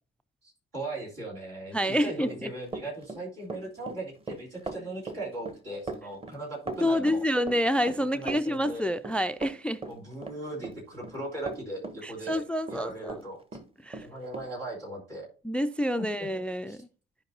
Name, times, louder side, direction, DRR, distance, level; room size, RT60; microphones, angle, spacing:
voice 1, 0.4-7.2 8.1-8.8 9.9-13.4 14.0-15.3 16.0-16.3 16.7-16.8, right 2 dB, 75° right, 3.3 m, -38 dB
voice 2, 1.7-2.5 6.8-9.8 12.0-13.2 13.8-14.1 15.4-16.8, equal, 5° left, 0.3 m, -28 dB
Run, 2.1-13.3 13.5-14.5, right 3 dB, 20° right, 1.0 m, -39 dB
14.0 x 5.2 x 2.8 m
figure-of-eight pair, 40°, 30 cm